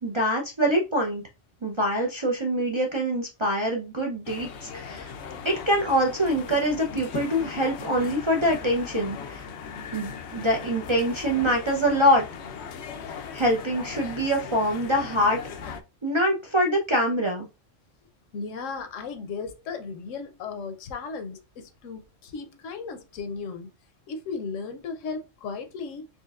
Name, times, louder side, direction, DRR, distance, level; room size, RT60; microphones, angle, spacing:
voice 1, 0.0-1.2 1.6-5.1 5.4-9.5 9.9-12.2 13.1-15.8 16.0-17.5, equal, 35° right, 0.5 m, -25 dB
sound 1, 4.3-15.8, left 6 dB, 70° left, 0.8 m, -38 dB
voice 2, 18.3-23.7 24.1-26.1, left 5 dB, 90° left, 1.1 m, -35 dB
4.3 x 3.1 x 2.4 m
omnidirectional pair, 1.3 m